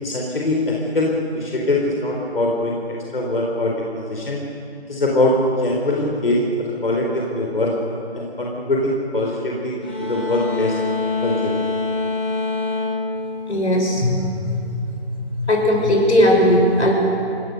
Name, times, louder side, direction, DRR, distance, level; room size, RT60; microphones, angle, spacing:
voice 1, 0.0-4.4 4.9-7.7 8.1-10.8 11.2-11.5, left 1 dB, 55° left, -2 dB, 3.9 m, -22 dB
sound 1, 9.8-14.3, left 3 dB, 10° left, 1.6 m, -25 dB
voice 2, 13.5-14.8 15.1-16.9, left 1 dB, 90° left, 0 dB, 6.8 m, -18 dB
30.0 x 18.0 x 6.6 m, 2.5 s
figure-of-eight pair, 175°, 33 cm